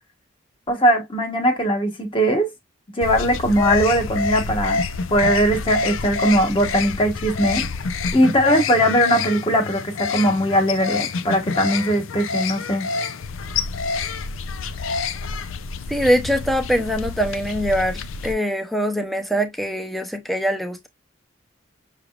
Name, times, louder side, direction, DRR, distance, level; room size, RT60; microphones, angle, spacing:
voice 1, 0.7-2.5 3.0-4.8 5.1-7.6 8.1-12.9, equal, 25° left, 1.0 m, -20 dB
sound 1, 3.0-18.3, left 4 dB, 75° left, 0.5 m, -27 dB
voice 2, 15.9-20.9, equal, ahead, 0.6 m, -23 dB
5.9 x 3.4 x 2.4 m
head